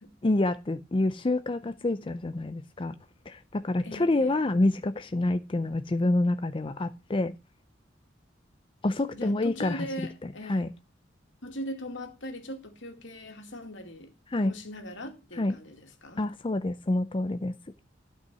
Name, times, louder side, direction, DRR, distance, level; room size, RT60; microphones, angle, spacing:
voice 1, 0.2-3.0 3.3-7.3 8.8-9.9 10.2-10.7 14.3-14.5 15.4-15.6 16.2-17.5, left 2 dB, 30° left, 0.5 m, -27 dB
voice 2, 3.8-4.4 9.1-10.7 11.4-14.1 14.4-16.3, equal, 80° left, 2.4 m, -40 dB
12.5 x 5.6 x 6.1 m
head